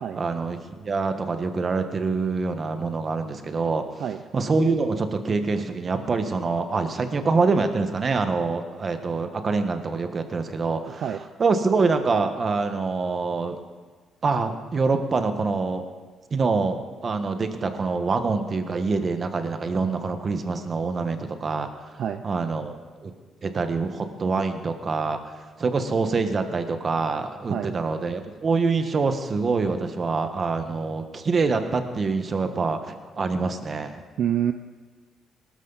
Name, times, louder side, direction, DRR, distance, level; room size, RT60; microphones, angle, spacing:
voice 1, 0.2-3.8 4.3-11.0 11.4-13.6 14.2-15.8 16.3-21.7 22.2-23.1 23.4-25.3 25.6-34.0, right 4 dB, 40° right, 7 dB, 1.4 m, -25 dB
voice 2, 10.9-11.2 22.0-22.2 27.5-27.7 34.2-34.5, right 9 dB, 70° right, 8 dB, 0.6 m, -27 dB
19.0 x 13.0 x 4.1 m, 1.4 s
cardioid pair, 105°, 0 cm